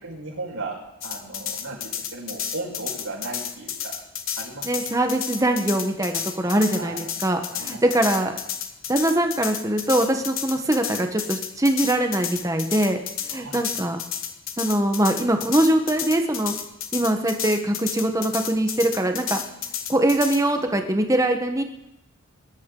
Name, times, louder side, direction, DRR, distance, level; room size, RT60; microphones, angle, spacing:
voice 1, 0.0-3.9 4.4-4.8 6.4-7.1 7.5-7.8 13.3-13.6, right 2 dB, 80° right, -3 dB, 5.1 m, -36 dB
sound 1, 1.0-20.4, left 9 dB, 60° left, 1.0 m, -31 dB
voice 2, 4.6-8.4 8.9-14.0 14.6-16.5 16.9-21.6, right 1 dB, 15° right, 5 dB, 1.1 m, -23 dB
20.5 x 11.5 x 3.8 m, 0.87 s
head